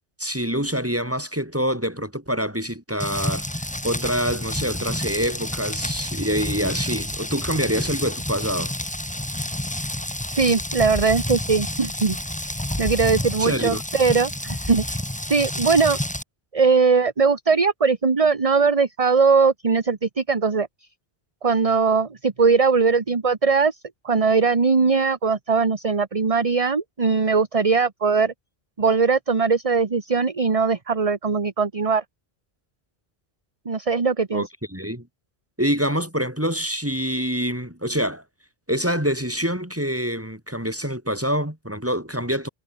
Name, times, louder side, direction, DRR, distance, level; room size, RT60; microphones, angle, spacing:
voice 1, 0.2-3.4 3.8-8.7 13.4-13.8 34.3-35.1 35.6-38.2 38.7-42.5, equal, 15° right, 3.5 m, -26 dB
Rain, 3.0-16.2, left 1 dB, 5° left, 1.2 m, -29 dB
voice 2, 10.4-12.2 12.4-12.5 12.8-15.0 15.3-16.0 16.5-20.7 21.4-23.8 24.0-28.3 28.8-32.0 33.6-34.4, right 4 dB, 35° right, 1.2 m, -20 dB
omnidirectional pair, 1.1 m